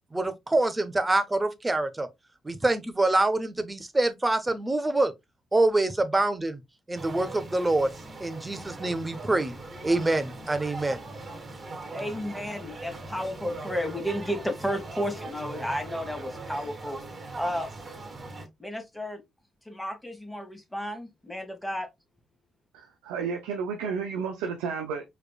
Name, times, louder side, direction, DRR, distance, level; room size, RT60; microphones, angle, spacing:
voice 1, 0.1-2.1 2.4-5.1 5.5-6.6 6.9-7.9 8.2-9.5 9.8-11.0, right 2 dB, 20° right, 1.0 m, -25 dB
sound 1, 6.9-18.5, right 2 dB, 40° right, 2.3 m, -40 dB
voice 2, 11.9-17.0 17.3-17.7 18.6-19.2 19.7-21.9, equal, 5° left, 1.8 m, -32 dB
voice 3, 22.7-25.1, right 5 dB, 90° right, 0.6 m, -32 dB
4.8 x 3.4 x 2.3 m
supercardioid pair, 50°, 0 cm